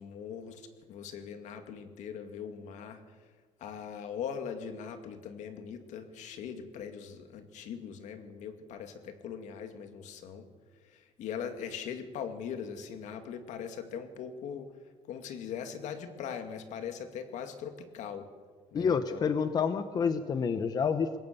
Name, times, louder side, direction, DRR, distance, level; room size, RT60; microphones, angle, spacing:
voice 1, 0.0-3.0 3.6-10.5 10.8-14.7 15.1-18.3 18.7-19.5, left 7 dB, 80° left, 7 dB, 2.3 m, -41 dB
voice 2, 18.7-21.2, left 6 dB, 35° left, 10 dB, 0.9 m, -28 dB
21.5 x 18.0 x 6.9 m, 1.5 s
cardioid pair, 175°, 12 cm